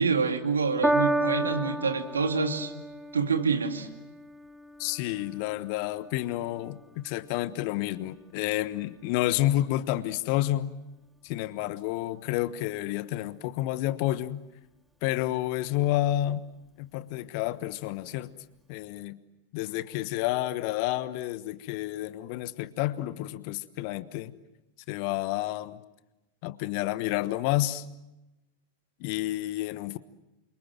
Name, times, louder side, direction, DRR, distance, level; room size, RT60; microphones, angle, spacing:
voice 1, 0.0-2.7 3.1-3.9, right 5 dB, 70° right, 6 dB, 2.4 m, -27 dB
Piano, 0.8-7.4 8.2-8.3, right 1 dB, ahead, 1.9 m, -32 dB
voice 2, 4.8-10.7 11.2-14.4 15.0-16.5 16.8-18.3 18.7-19.2 19.5-24.3 24.9-25.8 26.4-27.8 29.0-30.0, left 15 dB, 45° left, 16 dB, 1.2 m, -30 dB
28.5 x 25.0 x 7.6 m, 0.99 s
figure-of-eight pair, 90°, 0 cm